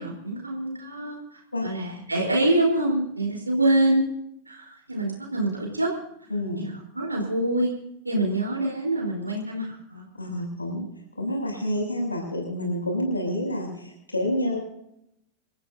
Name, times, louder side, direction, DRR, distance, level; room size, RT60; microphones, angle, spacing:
voice 1, 0.0-4.1 4.5-5.9 6.6-7.7 8.0-10.0, right 1 dB, 80° right, -1 dB, 4.1 m, -25 dB
voice 2, 6.3-6.7 10.2-10.8 11.2-14.6, left 1 dB, 80° left, -1 dB, 7.5 m, -28 dB
29.0 x 14.5 x 2.8 m, 0.78 s
figure-of-eight pair, 90°, 0 cm